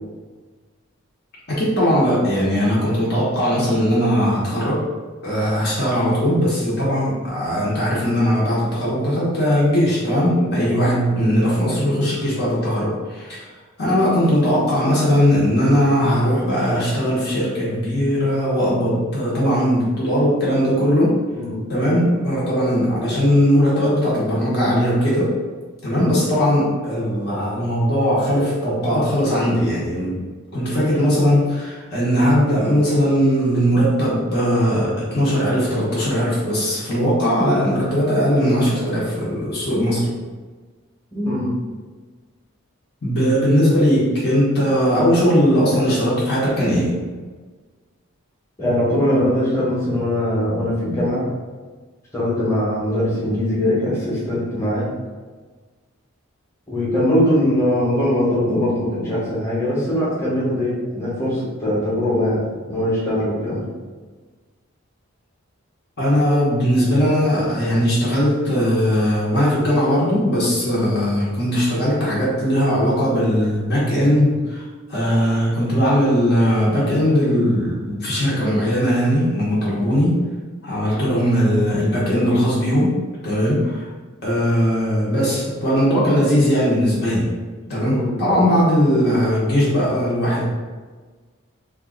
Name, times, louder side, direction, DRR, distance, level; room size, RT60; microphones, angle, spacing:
voice 1, 1.5-4.8 5.2-13.4 13.8-21.2 21.7-25.3 25.8-30.2 30.5-40.1 43.0-46.9 66.0-80.2 80.6-83.0 83.2-83.9 84.2-87.3 87.7-90.4, equal, 45° left, -7 dB, 0.9 m, -19 dB
voice 2, 10.4-11.2 21.3-21.6 25.9-26.0 36.9-37.1 41.1-41.5 48.6-51.3 52.1-54.9 56.7-63.6 81.0-81.1 87.8-88.6, left 1 dB, 15° left, -9 dB, 1.0 m, -21 dB
2.7 x 2.4 x 3.6 m, 1.4 s
head